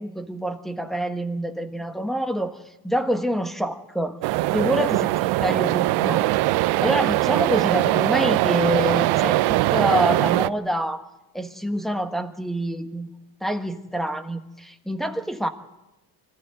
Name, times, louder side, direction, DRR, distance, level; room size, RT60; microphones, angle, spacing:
voice 1, 0.0-2.6 2.8-4.2 4.5-11.1 11.3-13.1 13.4-15.5, equal, ahead, 8 dB, 1.5 m, -26 dB
sound 1, 4.2-10.5, right 17 dB, 90° right, 0.7 m, -21 dB
24.5 x 15.5 x 9.2 m, 0.96 s
cardioid pair, 150°, 38 cm